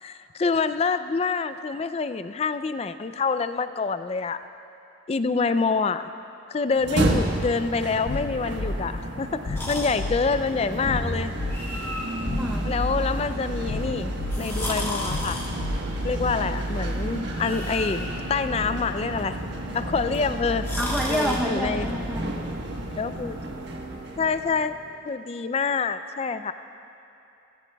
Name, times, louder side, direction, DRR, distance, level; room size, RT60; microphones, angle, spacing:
voice 1, 0.0-4.4 5.1-6.1 6.5-11.3 12.6-15.4 16.0-19.4 19.7-20.7 21.1-21.9 23.0-23.4 24.2-24.7 25.1-26.5, left 4 dB, 30° left, 11 dB, 0.3 m, -26 dB
sound 1, 6.7-24.9, right 1 dB, 65° right, 1.2 m, -31 dB
sound 2, 8.1-16.3, left 2 dB, 90° left, 0.6 m, -33 dB
sound 3, 9.5-21.4, left 1 dB, 15° left, 1.5 m, -37 dB
voice 2, 20.8-22.3, equal, ahead, -3 dB, 0.7 m, -28 dB
18.0 x 16.5 x 2.3 m, 2.8 s
head